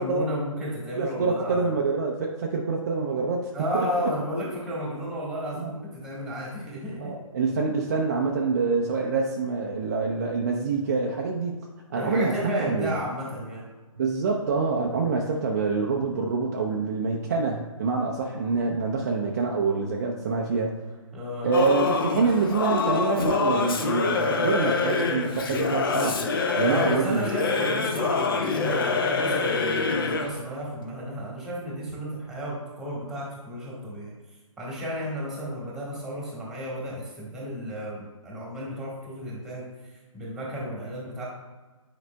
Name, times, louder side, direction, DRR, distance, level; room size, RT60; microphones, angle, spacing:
voice 1, 0.0-1.6 3.5-7.1 11.9-13.7 21.1-21.5 26.6-34.1 34.6-39.7 40.1-41.2, equal, 5° right, -5 dB, 1.5 m, -33 dB
voice 2, 0.9-3.9 5.6-5.7 7.0-12.9 14.0-20.7 21.4-26.2 26.6-27.3, right 4 dB, 30° right, -1 dB, 0.6 m, -26 dB
Singing / Musical instrument, 21.5-30.4, left 4 dB, 40° left, 0.8 m, -26 dB
9.4 x 4.9 x 2.2 m, 1.3 s
figure-of-eight pair, 145°, 18 cm